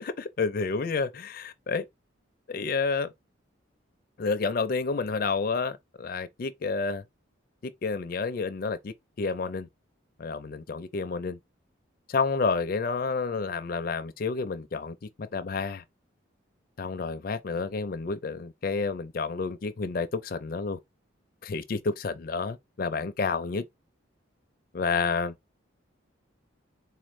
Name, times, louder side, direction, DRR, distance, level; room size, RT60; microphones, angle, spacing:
voice 1, 0.2-1.8 2.5-3.1 4.2-7.0 7.6-9.7 10.2-11.4 12.1-15.8 16.8-20.8 21.4-23.6 24.7-25.3, left 4 dB, 45° left, 0.4 m, -30 dB
3.9 x 2.5 x 3.1 m
head